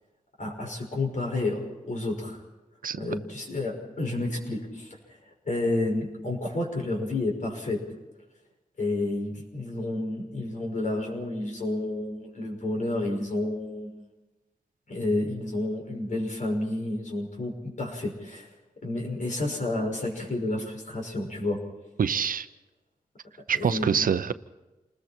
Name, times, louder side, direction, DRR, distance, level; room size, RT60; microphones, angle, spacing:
voice 1, 0.4-2.4 2.9-5.0 5.4-7.8 8.8-14.0 14.9-18.5 18.8-21.6 23.5-24.0, left 2 dB, 60° left, 2 dB, 5.7 m, -30 dB
voice 2, 22.0-22.5 23.5-24.3, right 7 dB, 75° right, 12 dB, 0.8 m, -25 dB
28.5 x 20.5 x 4.4 m, 1.1 s
wide cardioid pair, 95°, 15 cm